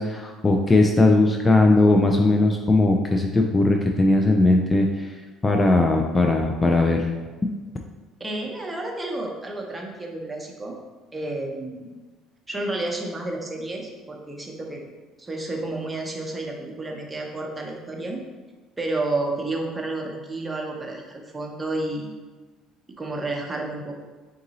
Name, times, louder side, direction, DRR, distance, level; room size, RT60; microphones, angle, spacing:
voice 1, 0.0-5.1 5.4-7.1 7.4-7.5, left 2 dB, 20° left, 2 dB, 0.4 m, -19 dB
voice 2, 8.2-10.8 11.1-11.9 12.5-14.8 15.2-18.2 18.8-22.1 23.0-24.0, right 2 dB, 15° right, 0 dB, 0.8 m, -31 dB
3.8 x 2.6 x 4.0 m, 1.3 s
supercardioid pair, 85°, 0 cm